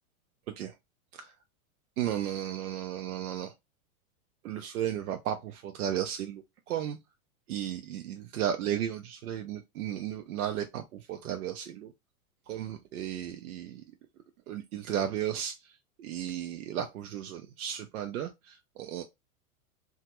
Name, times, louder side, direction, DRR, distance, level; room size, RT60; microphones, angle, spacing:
voice 1, 2.0-3.5 4.4-7.0 7.5-11.9 12.5-13.8 14.5-15.6 16.0-19.0, right 10 dB, 85° right, 0.5 m, -34 dB
2.8 x 2.3 x 2.9 m
hypercardioid pair, 110°, 43 cm